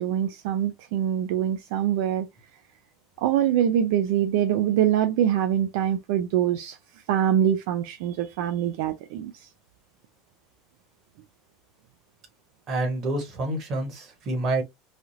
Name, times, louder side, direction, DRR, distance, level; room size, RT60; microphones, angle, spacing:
voice 1, 0.0-2.3 3.2-6.8 7.1-9.5, right 10 dB, 55° right, 0.4 m, -24 dB
voice 2, 12.7-14.6, right 2 dB, 30° right, 1.3 m, -28 dB
3.3 x 2.4 x 2.7 m
supercardioid pair, 180°, 0 cm